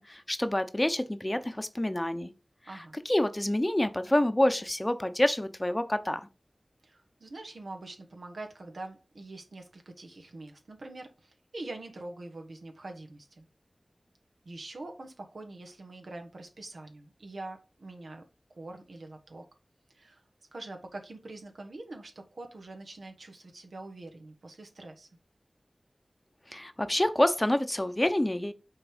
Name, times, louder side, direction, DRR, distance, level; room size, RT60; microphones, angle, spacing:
voice 1, 0.0-2.3 3.0-6.3 26.5-28.5, left 1 dB, 20° left, 0.8 m, -27 dB
voice 2, 6.8-13.5 14.4-18.2 18.5-19.4 19.9-20.2 20.5-25.1, right 2 dB, 90° right, 1.4 m, -44 dB
6.3 x 4.0 x 5.0 m
wide cardioid pair, 55°, 0 cm